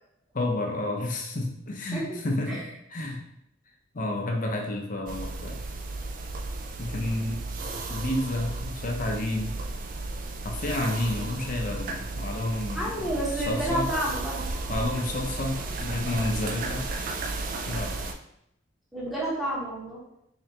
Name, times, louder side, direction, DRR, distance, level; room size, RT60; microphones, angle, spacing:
voice 1, 0.3-3.2 3.9-5.6 6.8-7.4 7.9-9.6 10.4-13.1 13.5-13.9 14.7-16.9 17.7-18.2, left 1 dB, 45° left, 1 dB, 0.7 m, -30 dB
sound 1, 5.1-18.1, right 2 dB, 45° right, 0.4 m, -34 dB
voice 2, 12.7-14.6 18.9-20.0, right 1 dB, ahead, -7 dB, 1.0 m, -30 dB
3.7 x 3.3 x 2.9 m, 0.78 s
head